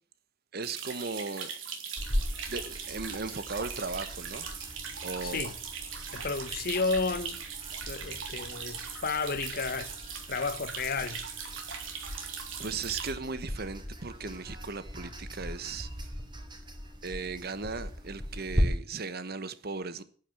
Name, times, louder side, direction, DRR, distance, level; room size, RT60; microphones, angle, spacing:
voice 1, 0.5-1.5 2.5-4.5 5.0-5.4 5.9-6.2 12.0-12.3 12.6-16.1 17.0-20.0, right 4 dB, 55° right, 1.2 m, -37 dB
sound 1, 0.6-13.1, right 6 dB, 85° right, 3.5 m, -40 dB
sound 2, 2.0-18.6, equal, 25° right, 2.9 m, -39 dB
voice 2, 5.2-5.5 6.1-7.4 7.9-9.9 10.3-11.2, left 4 dB, 50° left, 1.1 m, -32 dB
10.0 x 9.3 x 9.0 m
head